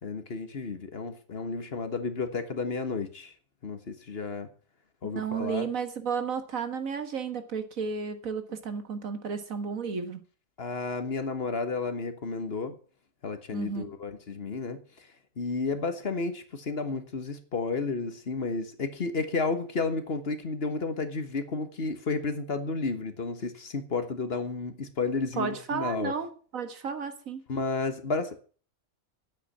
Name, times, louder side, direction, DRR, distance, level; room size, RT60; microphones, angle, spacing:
voice 1, 0.0-3.3 3.6-4.5 5.0-5.7 10.6-12.8 13.2-15.1 15.4-26.1 27.5-28.4, left 4 dB, 50° left, 1.6 m, -32 dB
voice 2, 5.2-10.2 13.5-13.9 25.4-27.4, right 6 dB, 80° right, 1.9 m, -33 dB
9.6 x 8.4 x 8.5 m
omnidirectional pair, 1.4 m